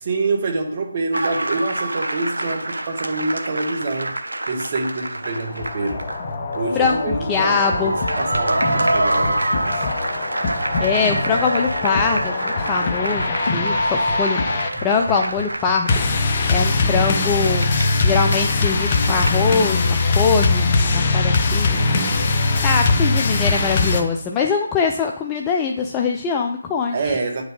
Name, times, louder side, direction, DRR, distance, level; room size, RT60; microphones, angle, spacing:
voice 1, 0.0-4.2 4.5-6.1 6.5-9.8 21.6-22.3 26.9-27.4, right 3 dB, 35° right, 2 dB, 1.4 m, -26 dB
sound 1, 1.1-6.3 6.5-6.6 7.5-16.2 17.3-19.4, right 1 dB, 75° right, 0.7 m, -26 dB
sound 2, 5.2-24.0, left 3 dB, 30° left, 0.8 m, -22 dB
voice 2, 6.8-7.9 10.8-14.4 14.8-16.0 16.5-17.7 18.0-21.8 22.6-27.2, left 5 dB, 15° left, 1 dB, 0.4 m, -22 dB
9.5 x 5.1 x 3.6 m, 0.66 s
figure-of-eight pair, 155°, 0 cm